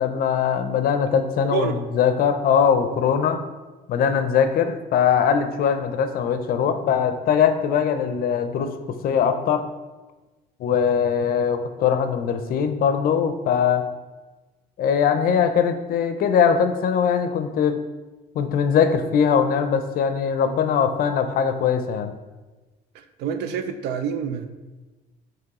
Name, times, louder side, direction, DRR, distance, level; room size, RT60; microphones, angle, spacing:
voice 1, 0.0-3.4 3.9-8.7 9.0-9.6 10.6-13.9 14.8-17.8 18.4-22.1, left 7 dB, 60° left, 9 dB, 0.5 m, -21 dB
voice 2, 22.9-24.5, right 7 dB, 85° right, 9 dB, 0.4 m, -27 dB
4.7 x 3.1 x 3.6 m, 1.2 s
cardioid pair, 110°, 17 cm